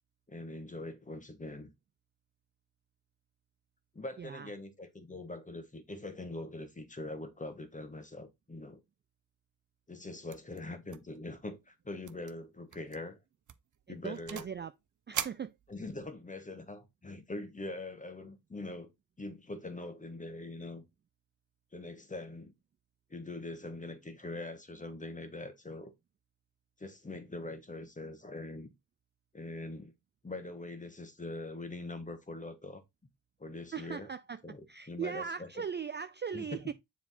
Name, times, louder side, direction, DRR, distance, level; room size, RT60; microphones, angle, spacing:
voice 1, 0.3-1.7 3.9-8.8 9.9-13.2 13.9-14.4 15.7-18.9 19.2-20.8 21.7-22.5 23.1-25.9 26.8-28.7 29.3-29.9 30.2-32.8 33.4-34.1 34.4-35.6 36.3-36.4, left 2 dB, 20° left, 1.4 m, -43 dB
voice 2, 4.2-4.5 13.9-14.7 15.1-15.6 33.7-34.4 34.7-36.7, right 7 dB, 30° right, 0.4 m, -39 dB
sound 1, 10.3-10.6 10.9-11.2 11.4-11.5 12.0-12.3 12.7-13.0 13.5-14.6 15.1-16.1, right 8 dB, 50° right, 0.8 m, -41 dB
7.1 x 3.6 x 4.1 m
cardioid pair, 90°, 38 cm